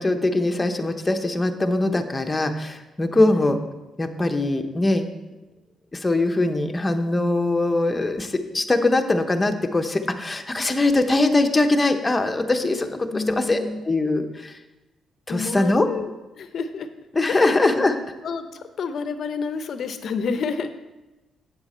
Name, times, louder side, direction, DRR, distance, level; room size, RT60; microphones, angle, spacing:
voice 1, 0.0-3.6 4.0-5.1 5.9-14.6 15.3-15.9 17.1-18.0, left 2 dB, 20° left, 6 dB, 0.8 m, -22 dB
voice 2, 3.2-3.6 13.1-13.8 15.3-16.9 17.3-17.9 18.2-20.7, left 5 dB, 60° left, 10 dB, 0.6 m, -30 dB
8.1 x 7.8 x 4.3 m, 1.1 s
cardioid pair, 90°, 0 cm